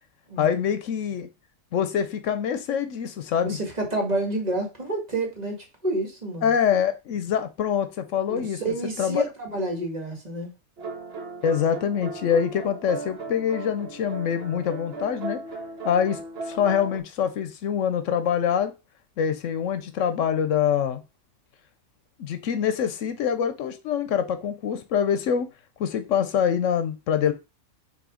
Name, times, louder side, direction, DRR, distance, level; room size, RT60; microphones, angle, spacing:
voice 1, 0.4-1.3 1.7-3.6 6.4-8.6 9.0-9.2 11.4-15.4 15.8-16.2 16.5-18.7 19.2-21.0 22.2-25.5 25.8-27.3, left 8 dB, 85° left, 1.0 m, -25 dB
voice 2, 3.5-6.5 8.3-10.5, right 2 dB, 35° right, 1.8 m, -29 dB
sound 1, 10.8-17.0, right 3 dB, 55° right, 1.3 m, -37 dB
6.3 x 3.2 x 4.9 m
omnidirectional pair, 1.3 m